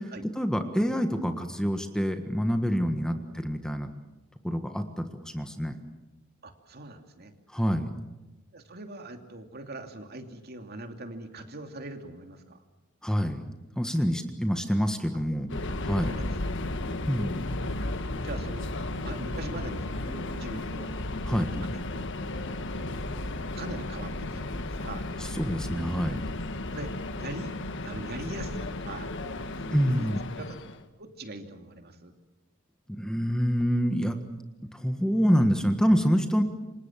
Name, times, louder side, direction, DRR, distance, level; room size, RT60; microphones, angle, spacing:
voice 1, 0.4-3.9 4.4-5.7 7.5-7.9 13.0-13.4 13.8-15.5 15.8-16.1 17.1-17.4 21.3-21.5 25.4-26.2 29.7-30.2 32.9-34.2 34.7-36.4, equal, 5° left, 6 dB, 1.5 m, -26 dB
voice 2, 3.1-3.5 6.4-7.3 8.5-12.6 15.7-16.5 16.8-17.0 17.6-17.8 18.2-20.9 21.3-22.1 22.4-25.1 26.7-26.9 27.2-27.5 27.8-29.1 29.4-30.1 30.4-30.6 31.0-32.1, right 1 dB, 50° right, 5 dB, 2.7 m, -42 dB
Subway metro underground, 15.5-30.8, left 2 dB, 60° left, 1.6 m, -34 dB
28.5 x 25.5 x 7.5 m, 1.1 s
head